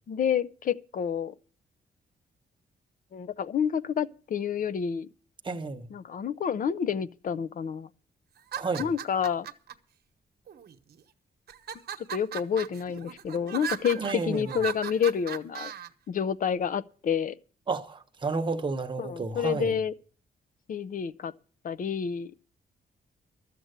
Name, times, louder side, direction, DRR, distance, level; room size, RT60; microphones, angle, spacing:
voice 1, 0.1-1.3 3.1-5.1 5.9-7.9 8.8-9.5 12.1-15.7 16.1-17.4 19.0-19.9 20.7-21.3 21.6-22.3, left 7 dB, 50° left, 0.6 m, -29 dB
voice 2, 5.4-5.9 8.6-8.9 14.0-14.6 17.7-19.7, right 4 dB, 25° right, 1.0 m, -31 dB
sound 1, 8.4-9.7 10.5-11.0 11.5-15.9, right 9 dB, 65° right, 1.1 m, -37 dB
13.0 x 7.7 x 8.0 m
wide cardioid pair, 160°, 18 cm